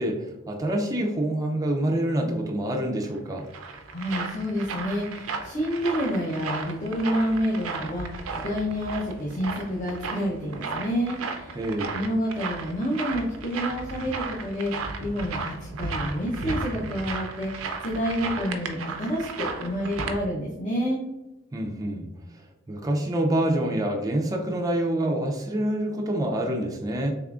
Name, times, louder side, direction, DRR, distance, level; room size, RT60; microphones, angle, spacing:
voice 1, 0.0-3.4 11.6-12.0 21.5-22.1 22.7-27.1, right 1 dB, 15° right, 0 dB, 0.4 m, -26 dB
sound 1, 3.1-20.2, right 4 dB, 85° right, 0.5 m, -34 dB
voice 2, 3.6-11.6 11.9-21.0, equal, 35° left, -5 dB, 0.6 m, -29 dB
3.6 x 3.4 x 2.3 m, 1.0 s
head